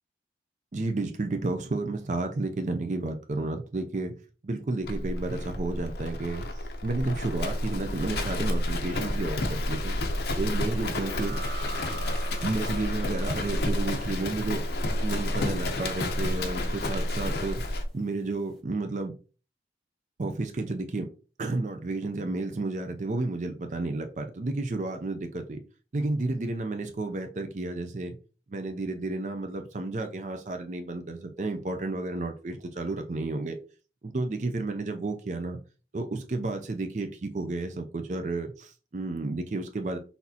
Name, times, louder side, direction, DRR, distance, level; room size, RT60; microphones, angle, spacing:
voice 1, 0.7-4.1 4.4-9.9 10.4-11.4 12.4-14.6 15.0-17.6 17.9-19.1 20.2-21.1 21.4-25.6 25.9-28.2 28.5-33.6 34.0-35.6 35.9-40.0, right 2 dB, 45° right, 0.4 m, -32 dB
Livestock farm animals working animals, 4.8-17.9, left 1 dB, 70° left, 0.7 m, -30 dB
sound 1, 10.7-17.9, right 3 dB, ahead, 1.0 m, -45 dB
6.0 x 2.7 x 2.8 m
head